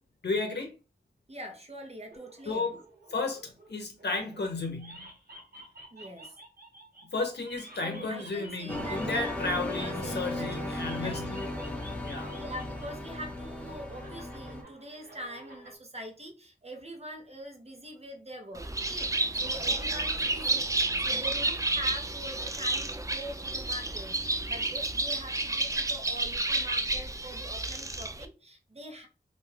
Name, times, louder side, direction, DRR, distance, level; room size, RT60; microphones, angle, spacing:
voice 1, 0.2-0.7 2.5-2.7 3.1-5.1 7.1-11.7 12.0-12.3, left 3 dB, 90° left, 0.7 m, -33 dB
voice 2, 1.3-2.8 5.9-6.3 7.8-10.6 11.0-11.9 12.3-29.1, right 1 dB, 40° right, 0.8 m, -44 dB
sound 1, 2.1-4.5 4.8-10.3 10.8-12.9 13.2-15.8, right 1 dB, 60° right, 1.0 m, -51 dB
sound 2, 8.7-14.6, left 1 dB, 10° left, 0.8 m, -36 dB
Bird, 18.5-28.3, right 2 dB, 20° right, 0.4 m, -30 dB
2.5 x 2.2 x 3.2 m
wide cardioid pair, 50°, 17 cm